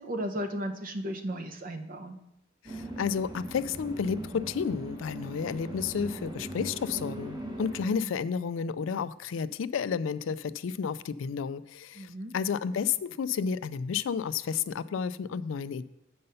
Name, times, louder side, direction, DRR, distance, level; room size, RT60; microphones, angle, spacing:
voice 1, 0.0-2.2 7.8-8.1 12.0-12.3, equal, 45° right, 6 dB, 0.8 m, -35 dB
voice 2, 2.6-15.8, left 6 dB, 85° left, 15 dB, 0.4 m, -31 dB
sound 1, 2.7-7.9, right 1 dB, 20° right, 1.1 m, -40 dB
7.7 x 5.4 x 5.5 m, 0.86 s
head